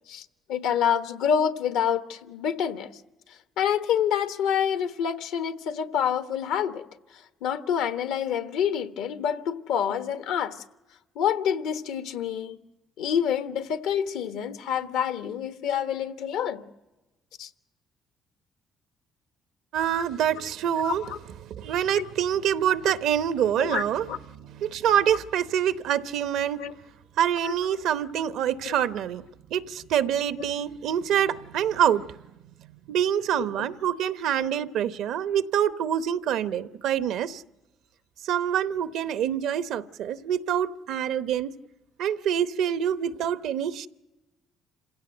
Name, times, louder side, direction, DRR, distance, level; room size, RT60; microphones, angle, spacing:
voice 1, 0.1-2.9 3.6-6.8 7.4-10.6 11.1-12.6 13.0-16.6 17.4-17.5 20.8-21.2 21.9-22.1 23.6-23.8 24.1-24.2 26.6-26.7 27.4-27.6 28.6-28.7 33.3-33.7, left 8 dB, 85° left, 1.3 m, -27 dB
voice 2, 19.7-21.1 21.4-26.6 27.2-29.2 29.5-32.2 32.9-37.4 38.2-41.5 42.0-43.9, right 9 dB, 80° right, 0.8 m, -26 dB
27.0 x 16.5 x 7.8 m
supercardioid pair, 75°, 0 cm